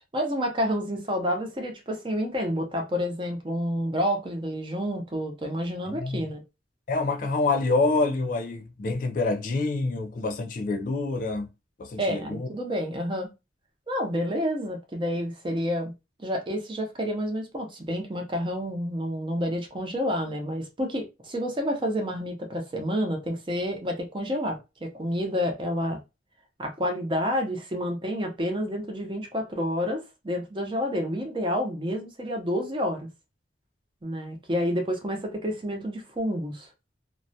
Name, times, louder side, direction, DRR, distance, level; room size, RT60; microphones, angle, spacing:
voice 1, 0.0-6.4 12.0-13.3 13.9-15.9 16.2-26.0 26.6-33.1 34.0-36.7, equal, 25° right, 0.6 m, -29 dB
voice 2, 6.9-11.5 11.8-12.5, left 3 dB, 45° left, 0.3 m, -27 dB
2.3 x 2.1 x 2.6 m
head